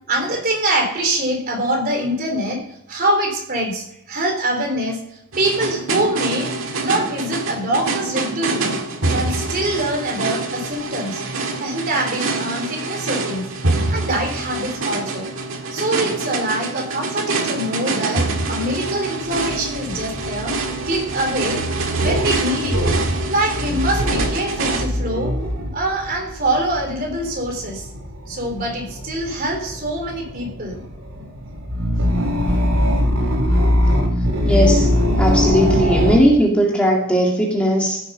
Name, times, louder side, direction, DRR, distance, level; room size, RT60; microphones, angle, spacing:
voice 1, 0.1-2.6 2.9-6.5 6.8-8.8 9.1-11.2 11.6-13.5 13.9-15.3 15.7-20.5 20.9-21.6 22.0-22.8 23.3-25.3 25.7-27.9 28.3-30.8, right 1 dB, 45° right, 0 dB, 3.7 m, -24 dB
sound 1, 5.3-24.8, right 3 dB, 65° right, 1.8 m, -25 dB
sound 2, 19.2-36.2, equal, 85° right, 3.7 m, -22 dB
voice 2, 34.4-34.9 35.2-38.0, equal, 5° left, -2 dB, 2.1 m, -17 dB
15.5 x 7.3 x 5.4 m, 0.78 s
head